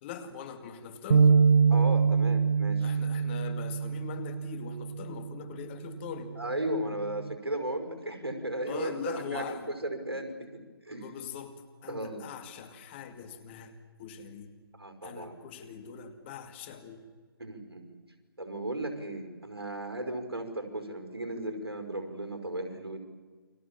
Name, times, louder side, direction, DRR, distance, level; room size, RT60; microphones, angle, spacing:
voice 1, 0.0-1.4 2.8-6.4 8.6-9.7 10.9-11.6 11.8-14.5 15.0-17.1, left 7 dB, 30° left, 8 dB, 2.4 m, -42 dB
sound 1, 1.1-5.4 5.9-6.1 6.9-7.4, right 5 dB, 50° right, 0.9 m, -25 dB
voice 2, 1.7-2.9 6.4-11.1 11.9-12.2 14.8-15.4 17.4-18.0 18.4-23.0, right 1 dB, 75° right, 6 dB, 5.4 m, -35 dB
29.5 x 24.0 x 7.4 m, 1.4 s
figure-of-eight pair, 145°, 13 cm